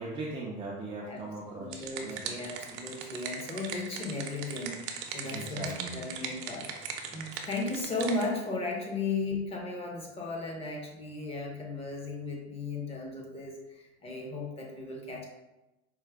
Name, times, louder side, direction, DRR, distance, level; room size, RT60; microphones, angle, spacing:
voice 1, 0.0-2.3 3.0-3.1 5.2-6.0, right 2 dB, 20° right, -4 dB, 0.4 m, -39 dB
sound 1, 1.4-8.3, right 6 dB, 60° right, 0.6 m, -40 dB
voice 2, 1.5-15.2, left 3 dB, 20° left, -1 dB, 0.7 m, -36 dB
4.6 x 2.1 x 3.4 m, 1.0 s
supercardioid pair, 140°, 31 cm